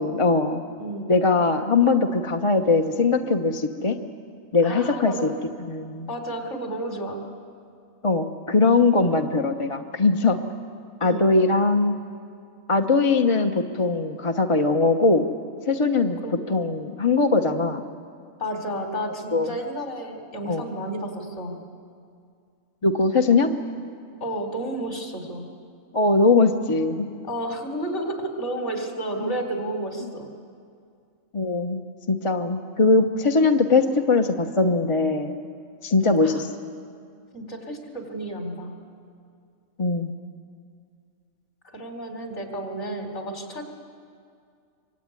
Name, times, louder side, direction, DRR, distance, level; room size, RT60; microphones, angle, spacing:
voice 1, 0.0-0.6 1.1-4.0 4.5-5.3 5.6-6.1 8.0-10.4 11.0-11.9 12.7-15.2 15.7-17.8 19.3-19.5 20.5-20.6 22.8-23.5 25.9-27.1 29.2-29.4 31.3-31.8 32.1-35.3 35.8-36.5 39.8-40.1, left 3 dB, 25° left, 4 dB, 0.9 m, -21 dB
voice 2, 0.8-1.1 4.6-5.5 6.1-7.2 11.0-11.3 16.2-16.4 18.4-21.6 24.2-25.4 27.3-30.3 36.0-36.4 37.3-38.7 41.7-43.6, right 1 dB, 50° left, 3 dB, 4.1 m, -31 dB
25.0 x 24.5 x 9.7 m, 2.3 s
omnidirectional pair, 1.5 m